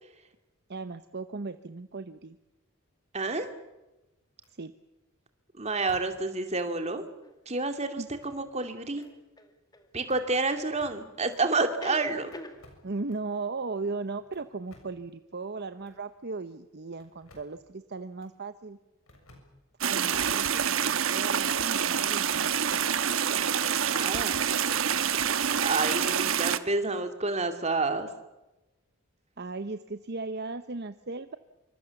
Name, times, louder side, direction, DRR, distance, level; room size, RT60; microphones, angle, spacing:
voice 1, 0.7-2.4 4.5-4.7 8.0-8.1 12.8-18.8 19.8-22.6 29.4-31.4, right 3 dB, 50° right, 11 dB, 0.9 m, -37 dB
voice 2, 3.1-3.5 5.6-7.0 7.5-9.0 9.9-12.3 23.9-24.4 25.6-28.1, right 3 dB, 30° right, 7 dB, 2.5 m, -29 dB
sound 1, 3.3-3.8 4.4-4.6 5.9-6.3 6.6-6.7 8.0-8.6 8.9-9.1 9.9-11.4 12.3-13.3 14.2-15.1 15.8-16.0 16.9-17.6 18.2-18.3 19.1-19.9, left 1 dB, 85° left, 6.9 m, -57 dB
sound 2, 7.2-7.3 9.0-9.9 10.8-11.3 11.6-12.6, left 1 dB, 20° left, 2.2 m, -44 dB
sound 3, 19.8-26.6, right 8 dB, 70° right, 1.2 m, -27 dB
27.0 x 25.0 x 7.1 m, 1.0 s
head